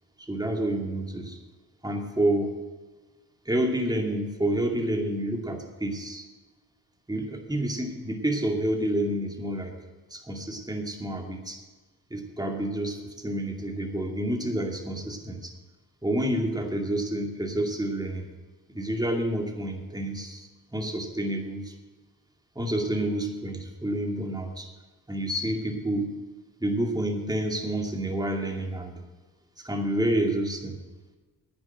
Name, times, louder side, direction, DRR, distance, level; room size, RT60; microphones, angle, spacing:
voice 1, 0.3-1.4 1.8-2.5 3.5-6.2 7.1-9.7 10.1-11.6 12.1-15.5 16.0-18.3 18.7-21.7 22.6-24.7 25.1-26.1 26.6-29.0 29.6-30.8, right 1 dB, 10° right, 3 dB, 2.5 m, -29 dB
10.0 x 9.5 x 7.9 m, 1.2 s
hypercardioid pair, 40°, 45 cm